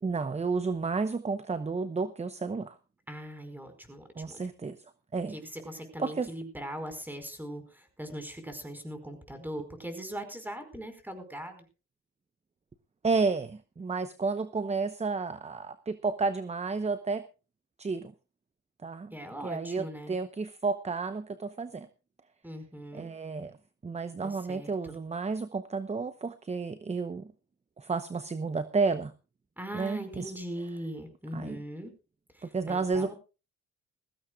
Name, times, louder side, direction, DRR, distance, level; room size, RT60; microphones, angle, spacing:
voice 1, 0.0-2.8 4.2-4.8 5.1-5.4 6.0-6.3 13.0-17.2 17.8-18.1 18.8-19.1 19.4-21.9 22.9-23.6 23.8-27.3 27.8-29.1 29.7-30.3 31.3-31.6 32.4-33.1, right 4 dB, 20° right, 12 dB, 0.9 m, -31 dB
voice 2, 3.1-4.5 5.3-11.6 19.1-20.1 22.4-23.1 24.2-24.9 29.6-31.9 32.3-33.1, equal, 5° right, 7 dB, 5.0 m, -40 dB
21.0 x 15.5 x 2.4 m, 0.31 s
cardioid pair, 90°, 30 cm